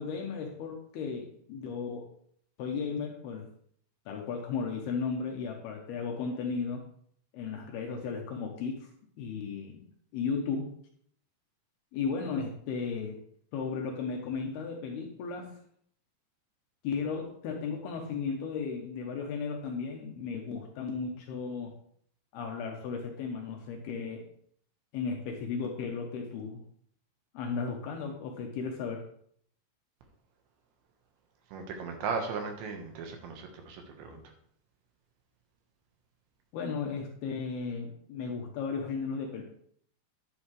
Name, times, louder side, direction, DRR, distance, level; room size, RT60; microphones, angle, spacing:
voice 1, 0.0-2.1 2.6-3.5 4.1-6.9 7.3-8.9 9.2-9.9 10.1-10.7 11.9-13.2 13.5-15.5 16.8-21.7 22.3-24.3 24.9-26.6 27.3-29.1 36.5-39.4, left 5 dB, 75° left, 2 dB, 2.6 m, -35 dB
voice 2, 31.5-34.2, right 5 dB, 75° right, 4 dB, 3.5 m, -36 dB
10.5 x 9.4 x 3.3 m, 0.63 s
omnidirectional pair, 5.4 m